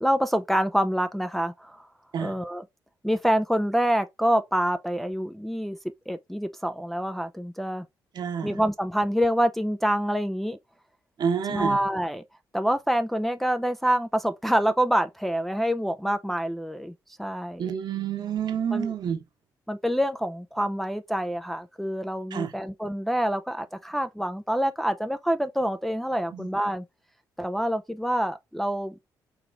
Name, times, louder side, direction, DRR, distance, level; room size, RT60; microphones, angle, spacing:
voice 1, 0.0-1.9 2.2-2.6 3.0-5.8 6.1-7.8 8.4-10.6 11.5-12.2 12.5-16.9 17.2-17.7 18.7-18.9 19.7-26.8 27.4-28.9, equal, 5° left, 0.4 m, -26 dB
voice 2, 8.1-8.5 11.2-11.8 17.6-19.2 22.3-22.5 26.3-26.5, right 7 dB, 60° right, 1.1 m, -28 dB
4.8 x 2.9 x 2.5 m
supercardioid pair, 70°, 8 cm